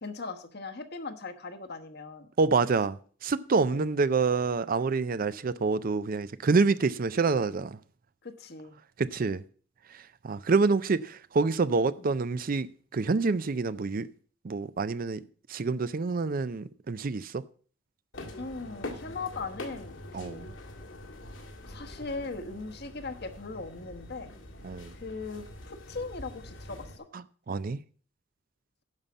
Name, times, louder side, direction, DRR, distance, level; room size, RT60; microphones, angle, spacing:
voice 1, 0.0-2.3 3.7-3.9 8.2-8.8 12.0-12.1 18.4-20.5 21.6-24.3 24.9-27.1, left 3 dB, 55° left, 1.2 m, -39 dB
voice 2, 2.4-7.8 9.0-9.4 9.9-14.1 14.4-15.2 15.5-17.4 20.1-20.4 24.6-24.9 27.5-27.8, right 4 dB, 45° right, 0.5 m, -27 dB
sound 1, 18.1-27.0, left 1 dB, 75° left, 2.0 m, -44 dB
10.5 x 5.6 x 7.2 m
head